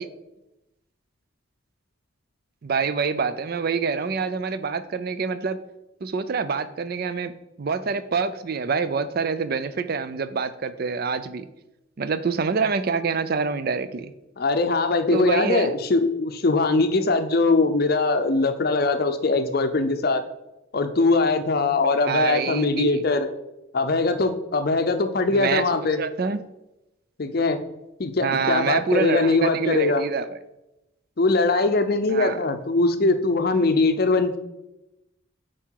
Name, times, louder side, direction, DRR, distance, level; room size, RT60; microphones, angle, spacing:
voice 1, 2.6-5.6 6.0-7.3 7.6-11.5 12.0-14.1 15.1-15.7 22.0-23.0 25.3-25.7 26.0-26.4 28.2-30.4 32.1-32.4, right 5 dB, 45° right, 13 dB, 0.4 m, -26 dB
voice 2, 14.4-20.2 20.7-23.3 23.7-26.0 27.2-27.6 28.0-30.0 31.2-34.4, left 3 dB, 45° left, 8 dB, 0.6 m, -21 dB
7.5 x 4.7 x 4.6 m, 0.95 s
head